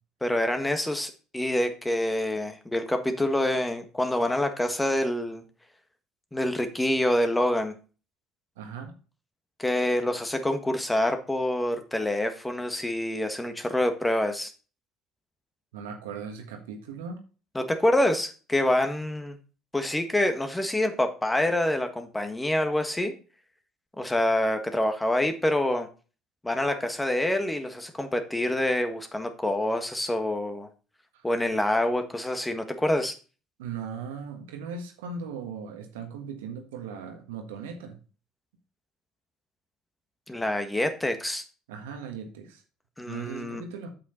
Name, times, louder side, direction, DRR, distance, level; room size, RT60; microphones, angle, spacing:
voice 1, 0.2-5.4 6.3-7.7 9.6-14.5 17.5-19.4 19.7-23.1 24.0-25.9 26.4-30.7 31.2-33.1 40.3-41.4 43.0-43.6, left 1 dB, 10° left, 7 dB, 1.6 m, -26 dB
voice 2, 8.6-8.9 15.7-17.2 33.6-38.0 41.7-42.6 43.1-43.9, right 6 dB, 75° right, 4 dB, 1.6 m, -38 dB
8.1 x 6.2 x 4.4 m, 0.36 s
hypercardioid pair, 60°, 0 cm